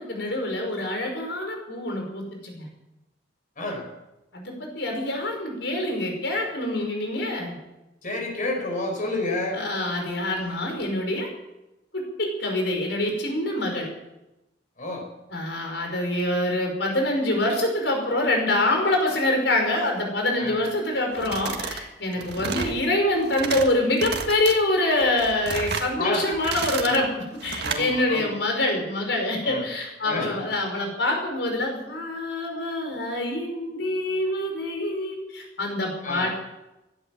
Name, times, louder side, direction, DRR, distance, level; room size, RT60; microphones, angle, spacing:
voice 1, 0.0-2.7 4.3-7.6 9.5-11.3 11.9-13.9 15.3-36.3, left 1 dB, 80° left, 2 dB, 5.6 m, -25 dB
voice 2, 8.0-9.6 14.8-15.0 20.4-20.6 22.1-22.3 26.0-26.3 26.9-27.0 27.6-28.3 29.4-29.6 30.0-30.4 36.0-36.3, left 2 dB, 50° left, 1 dB, 5.0 m, -30 dB
sound 1, 21.1-21.8 22.1-22.8 23.2-23.7 24.0-24.5 25.0-25.9 26.3-27.0 27.4-27.8, right 5 dB, 65° right, 1.8 m, -31 dB
17.0 x 12.0 x 7.3 m, 0.96 s
head